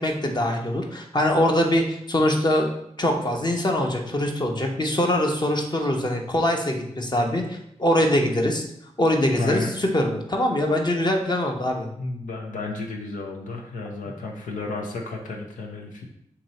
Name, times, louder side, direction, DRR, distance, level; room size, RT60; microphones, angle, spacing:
voice 1, 0.0-2.7 3.0-8.6 9.0-11.9, left 1 dB, 35° left, 2 dB, 0.8 m, -23 dB
voice 2, 9.3-9.7 12.0-16.0, left 3 dB, 85° left, 1 dB, 0.6 m, -32 dB
2.9 x 2.8 x 4.1 m, 0.75 s
cardioid pair, 40°, 13 cm